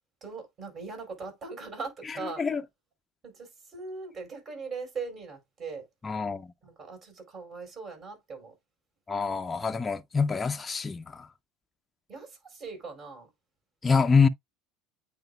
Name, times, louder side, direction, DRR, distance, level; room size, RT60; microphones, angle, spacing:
voice 1, 0.2-2.4 3.2-5.9 6.6-8.5 12.1-13.3, right 4 dB, 40° right, 4.6 m, -40 dB
voice 2, 6.0-6.5 9.1-11.3 13.8-14.3, left 5 dB, 20° left, 0.5 m, -25 dB
9.1 x 4.9 x 2.3 m
supercardioid pair, 95°, 0 cm